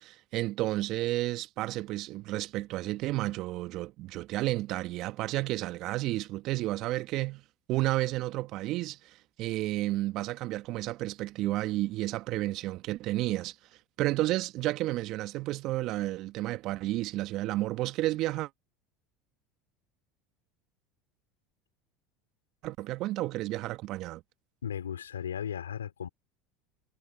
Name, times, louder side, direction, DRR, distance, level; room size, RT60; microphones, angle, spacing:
voice 1, 0.0-7.4 7.7-13.5 14.0-18.5 22.6-24.2, right 17 dB, 55° right, 1.5 m, -31 dB
voice 2, 24.6-26.1, left 8 dB, 85° left, 3.2 m, -36 dB
hypercardioid pair, 80°, 0 cm